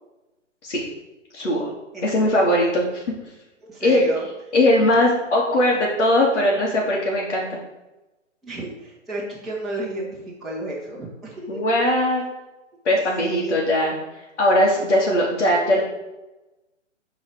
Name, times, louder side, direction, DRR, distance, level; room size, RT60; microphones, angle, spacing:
voice 1, 1.3-1.7 2.0-3.0 3.8-4.0 4.5-7.6 11.5-12.2 12.8-13.9 14.4-15.8, left 1 dB, 60° left, -6 dB, 3.0 m, -20 dB
voice 2, 1.9-2.9 3.6-4.3 8.4-11.6 13.2-13.6, right 1 dB, ahead, -10 dB, 1.9 m, -32 dB
11.0 x 4.9 x 4.9 m, 1.0 s
hypercardioid pair, 150°, 38 cm